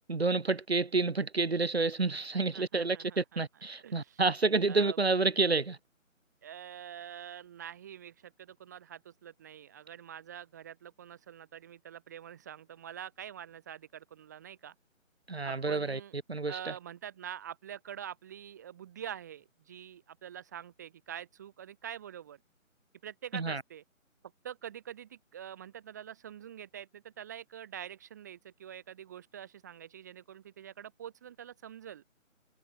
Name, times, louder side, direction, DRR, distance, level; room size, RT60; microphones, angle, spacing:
voice 1, 0.1-5.8 15.3-16.0 16.3-16.7 23.3-23.6, right 3 dB, 50° right, 1.5 m, -29 dB
voice 2, 2.5-3.4 3.8-4.2 4.7-5.0 6.4-14.7 15.4-16.1 16.5-22.4 23.0-23.8 24.4-32.0, right 9 dB, 15° right, 2.1 m, -45 dB
figure-of-eight pair, 155°, 41 cm